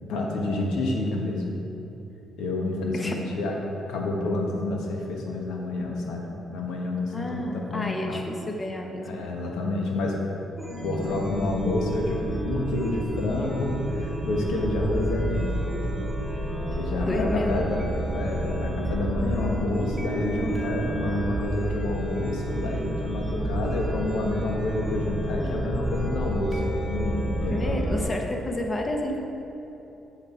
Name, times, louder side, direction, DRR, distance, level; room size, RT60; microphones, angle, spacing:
voice 1, 0.1-1.6 2.4-3.6 3.9-8.2 9.0-10.2 10.8-15.6 16.3-27.8, left 2 dB, 85° left, 0 dB, 1.3 m, -29 dB
voice 2, 7.1-9.2 17.0-17.7 27.5-29.2, left 1 dB, 25° left, 2 dB, 1.0 m, -30 dB
Chime, 10.6-28.0, right 1 dB, 10° right, 1.5 m, -30 dB
7.2 x 6.5 x 4.5 m, 3.0 s
cardioid pair, 90°, 0 cm